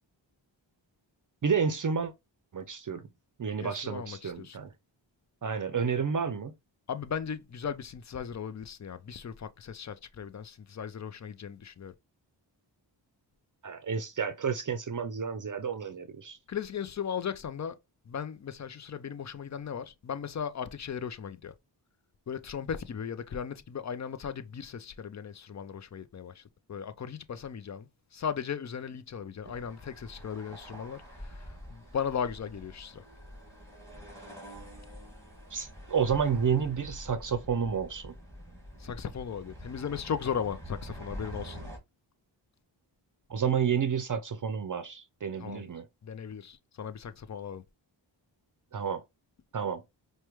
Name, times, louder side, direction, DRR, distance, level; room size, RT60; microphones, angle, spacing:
voice 1, 1.4-2.1 2.5-3.0 3.4-4.7 5.4-6.5 13.6-16.4 35.5-38.2 43.3-45.9 48.7-49.0 49.5-49.8, right 6 dB, 45° right, 0.6 m, -30 dB
voice 2, 3.6-4.6 6.9-11.9 16.5-17.8 18.1-21.5 22.3-26.4 26.7-33.0 38.8-41.6 45.4-45.7 46.0-47.6, left 7 dB, 40° left, 0.5 m, -37 dB
sound 1, 29.4-41.8, equal, 5° left, 1.9 m, -46 dB
4.7 x 2.2 x 3.0 m
cardioid pair, 60°, 46 cm